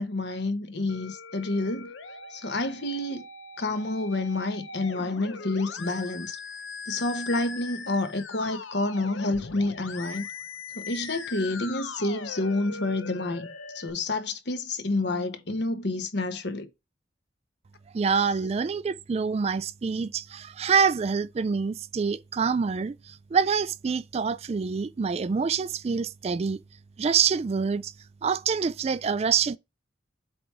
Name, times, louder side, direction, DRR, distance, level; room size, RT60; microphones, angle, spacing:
voice 1, 0.0-1.9 2.3-3.2 3.6-6.4 6.9-10.2 10.8-13.5 13.7-16.7, left 2 dB, 60° left, 1.1 m, -29 dB
Musical instrument, 0.9-13.9, left 4 dB, 90° left, 1.0 m, -40 dB
voice 2, 17.9-26.6 27.0-27.9 28.2-29.6, right 6 dB, 35° right, 0.3 m, -26 dB
7.8 x 3.5 x 4.3 m
head